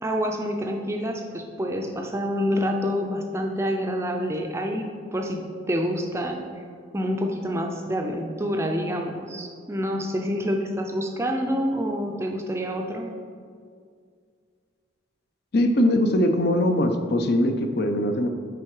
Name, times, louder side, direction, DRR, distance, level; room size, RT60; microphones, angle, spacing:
voice 1, 0.0-6.4 6.9-13.2, equal, 15° right, 3 dB, 0.5 m, -27 dB
voice 2, 15.5-18.3, left 1 dB, 50° left, 6 dB, 0.5 m, -21 dB
8.8 x 3.7 x 4.8 m, 2.2 s
head